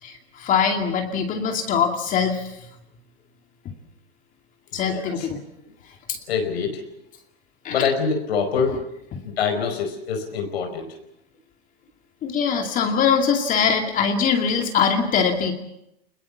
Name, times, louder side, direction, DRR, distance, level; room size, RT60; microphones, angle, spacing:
voice 1, 0.0-2.7 4.7-5.4 6.1-6.2 7.6-7.9 9.1-9.2 12.2-15.5, left 6 dB, 25° left, 4 dB, 2.5 m, -22 dB
voice 2, 4.7-5.3 6.3-6.8 7.7-8.9 9.2-10.9, left 6 dB, 80° left, 5 dB, 5.0 m, -25 dB
25.5 x 21.0 x 7.3 m, 0.83 s
supercardioid pair, 145°, 31 cm